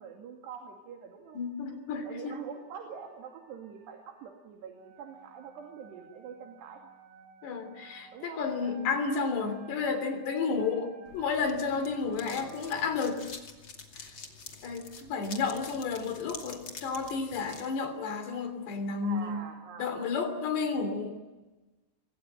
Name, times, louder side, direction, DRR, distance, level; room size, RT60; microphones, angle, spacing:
voice 1, 0.0-1.4 2.0-6.9 8.1-8.5 8.7-9.1 12.2-12.6 19.0-20.1 20.9-21.0, right 7 dB, 75° right, 4 dB, 4.5 m, -45 dB
sound 1, 0.9-12.9, right 3 dB, 50° right, 6.9 m, -55 dB
voice 2, 1.4-2.4 7.4-13.2 14.6-19.4 19.8-21.2, left 5 dB, 75° left, 8 dB, 5.3 m, -32 dB
sound 2, 11.1-17.7, left 4 dB, 35° left, 2.6 m, -47 dB
26.5 x 21.5 x 9.1 m, 1.1 s
omnidirectional pair, 5.0 m